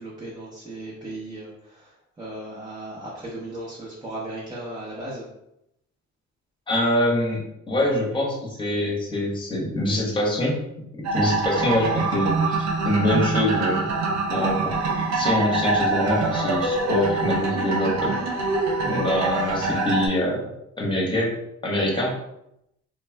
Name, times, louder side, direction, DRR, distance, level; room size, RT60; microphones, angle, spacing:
voice 1, 0.0-5.3, right 1 dB, 15° right, -7 dB, 0.7 m, -36 dB
voice 2, 6.7-7.4 7.7-10.6 10.9-13.9 14.3-18.2 18.8-20.4 20.8-21.3 21.6-22.1, left 1 dB, 15° left, -2 dB, 0.9 m, -24 dB
sound 1, 11.0-20.1, right 3 dB, 65° right, 0.5 m, -24 dB
2.3 x 2.1 x 3.3 m, 0.82 s
cardioid pair, 90°, 30 cm